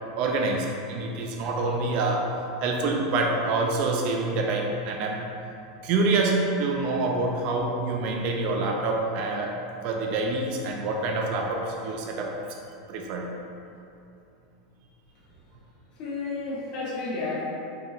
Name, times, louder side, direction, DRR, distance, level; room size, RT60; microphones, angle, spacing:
voice 1, 0.2-2.3 2.6-5.2 5.8-9.5 9.8-12.3 12.9-13.3, right 3 dB, 50° right, 1 dB, 0.3 m, -26 dB
voice 2, 16.0-17.4, left 3 dB, 50° left, -9 dB, 1.0 m, -31 dB
3.6 x 2.8 x 2.4 m, 2.7 s
hypercardioid pair, 110°, 2 cm